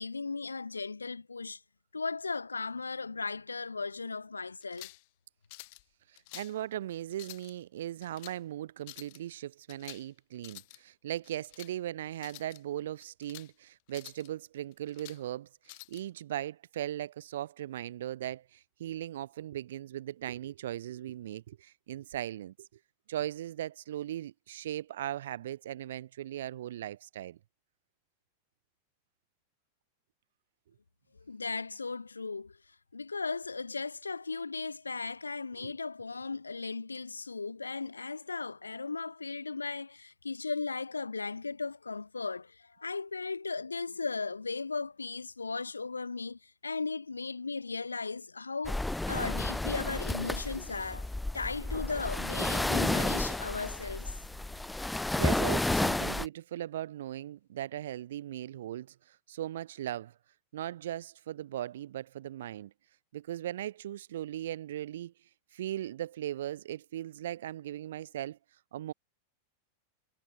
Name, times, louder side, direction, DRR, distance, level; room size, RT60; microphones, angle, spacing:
voice 1, 0.0-1.6 1.9-4.9 31.3-32.6 32.9-51.1 51.3-54.1, left 4 dB, 80° left, 0.8 m, -36 dB
sound 1, 4.6-5.1 5.5-5.8 6.2-6.6 7.1-7.5 8.0-8.4 8.8-9.2 9.7-10.1 10.4-10.8 11.2-11.7 12.2-12.6 13.0-13.5 13.9-14.3 14.7-15.2 15.7-16.0, left 27 dB, 50° left, 4.0 m, -49 dB
voice 2, 6.3-22.7 23.1-27.4 35.6-35.7 55.2-60.1 60.5-62.7 63.1-65.1 65.5-68.4 68.7-68.9, right 12 dB, 60° right, 1.7 m, -38 dB
sound 2, 48.6-56.3, left 2 dB, 5° left, 0.8 m, -31 dB
figure-of-eight pair, 90°, 0 cm